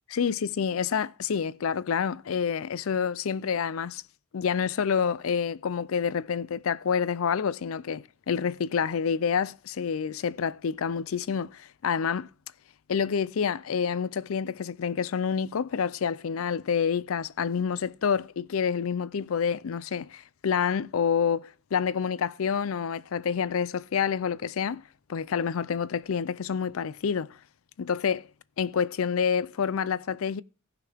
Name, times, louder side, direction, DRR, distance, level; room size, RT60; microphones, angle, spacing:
voice 1, 0.1-4.0 4.3-12.3 12.9-24.8 25.1-27.3 27.8-28.3 28.6-30.4, left 6 dB, 80° left, 0.5 m, -28 dB
17.5 x 6.0 x 3.5 m
head